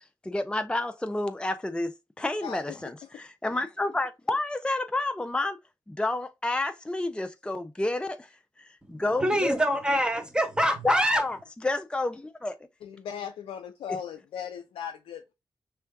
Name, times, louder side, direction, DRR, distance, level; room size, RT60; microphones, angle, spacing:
voice 1, 0.2-1.9 2.2-5.6 5.9-8.3 8.6-9.6 10.8-11.4 11.6-12.6, left 2 dB, 10° left, 0.5 m, -29 dB
voice 2, 8.8-11.2, equal, 10° right, 1.2 m, -25 dB
voice 3, 12.8-15.3, left 8 dB, 80° left, 0.4 m, -37 dB
4.4 x 3.4 x 2.2 m
supercardioid pair, 40°, 9 cm